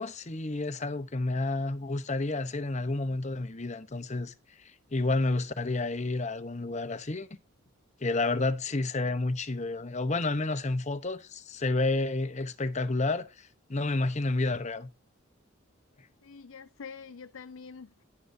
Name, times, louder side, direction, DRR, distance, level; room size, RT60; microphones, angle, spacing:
voice 1, 0.0-4.3 4.9-7.3 8.0-14.9, left 2 dB, 35° left, 0.9 m, -30 dB
voice 2, 16.2-18.0, left 5 dB, 75° left, 0.5 m, -46 dB
11.0 x 10.0 x 2.7 m
head